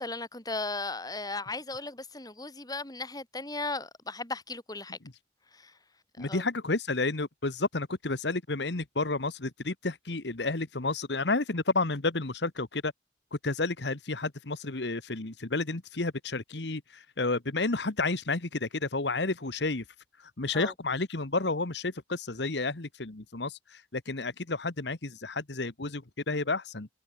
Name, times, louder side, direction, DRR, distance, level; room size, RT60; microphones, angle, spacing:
voice 1, 0.0-5.0 5.5-5.8 6.1-6.4 20.5-20.7, left 3 dB, 20° left, 5.6 m, -36 dB
voice 2, 6.2-12.9 13.3-19.8 20.2-26.9, left 3 dB, 70° left, 1.5 m, -31 dB
head